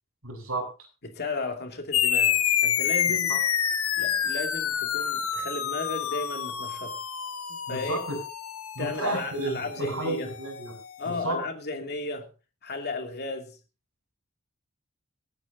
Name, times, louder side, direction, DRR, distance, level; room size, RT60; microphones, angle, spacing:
voice 1, 0.2-0.7 3.3-3.4 7.7-8.2 8.8-10.7 11.1-11.4, right 2 dB, 80° right, 6.8 m, -32 dB
voice 2, 1.0-3.4 3.9-7.0 7.5-8.0 8.8-10.3 11.0-12.3 12.6-13.6, left 3 dB, 50° left, 2.6 m, -34 dB
sound 1, 1.9-10.8, left 9 dB, 80° left, 1.2 m, -28 dB
26.0 x 9.9 x 2.7 m
head